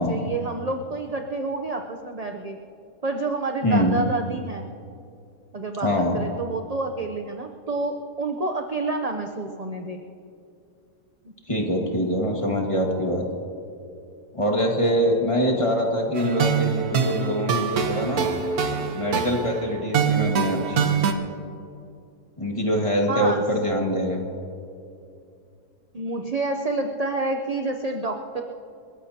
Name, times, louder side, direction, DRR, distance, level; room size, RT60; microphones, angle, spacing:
voice 1, 0.0-2.6 3.0-4.7 5.5-10.0 11.2-11.3 23.1-23.4 25.9-28.4, right 2 dB, 40° right, 3 dB, 0.5 m, -28 dB
voice 2, 3.6-4.0 5.8-6.2 11.5-13.2 14.3-18.3 18.9-20.9 22.4-24.2, equal, 20° left, 0 dB, 1.8 m, -24 dB
sound 1, 16.1-21.1, right 6 dB, 70° right, 1.5 m, -24 dB
29.5 x 14.0 x 2.9 m, 2.5 s
omnidirectional pair, 1.7 m